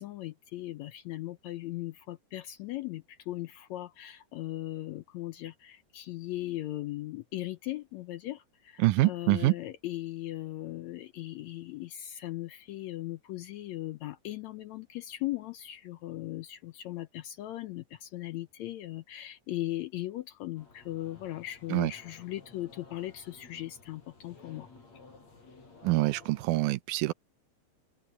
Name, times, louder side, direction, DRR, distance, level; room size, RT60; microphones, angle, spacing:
voice 1, 0.0-24.7, left 15 dB, 75° left, 1.8 m, -38 dB
voice 2, 8.8-9.5 21.7-21.9 25.8-27.1, right 19 dB, 80° right, 2.1 m, -25 dB
sound 1, 20.6-26.5, left 3 dB, 55° left, 6.7 m, -55 dB
open air
omnidirectional pair, 3.7 m